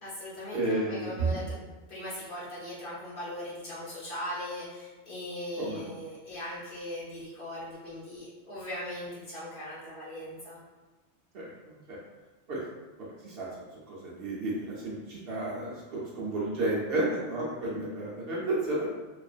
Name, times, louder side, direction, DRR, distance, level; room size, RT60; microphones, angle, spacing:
voice 1, 0.0-1.6 1.9-10.6, left 1 dB, 50° left, -9 dB, 1.0 m, -39 dB
voice 2, 0.5-1.4 5.6-5.9 11.3-11.5 11.9-12.0 12.5-12.6 13.2-13.6 13.9-18.9, right 2 dB, 60° right, -5 dB, 0.8 m, -32 dB
2.5 x 2.3 x 2.4 m, 1.2 s
omnidirectional pair, 1.2 m